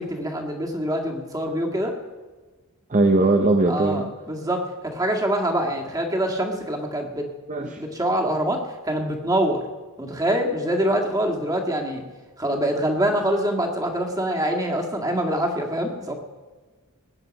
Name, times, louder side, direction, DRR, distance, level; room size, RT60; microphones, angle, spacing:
voice 1, 0.0-1.9 3.7-7.3 7.6-9.6 10.0-12.0 12.4-16.1, right 1 dB, 15° right, 1 dB, 1.9 m, -25 dB
voice 2, 2.9-4.1 7.5-7.8, right 2 dB, 35° right, 5 dB, 0.8 m, -20 dB
20.5 x 9.2 x 5.3 m, 1.3 s
head